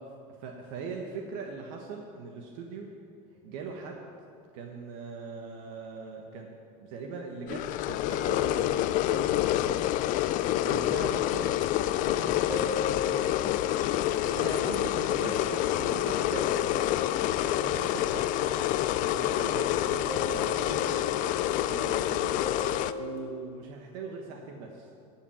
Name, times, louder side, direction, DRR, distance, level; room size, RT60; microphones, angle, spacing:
voice 1, 0.0-2.9 3.4-4.1 4.5-6.5 6.8-10.3 10.6-11.5 12.0-13.6 14.3-16.6 17.4-22.4 22.9-24.9, right 4 dB, 65° right, 1 dB, 1.3 m, -41 dB
sound 1, 3.4-3.5 8.1-23.2, left 2 dB, 25° right, 2.5 m, -40 dB
sound 2, 7.5-22.9, left 14 dB, 45° left, 0.4 m, -28 dB
13.0 x 5.9 x 8.7 m, 2.4 s
supercardioid pair, 125°, 18 cm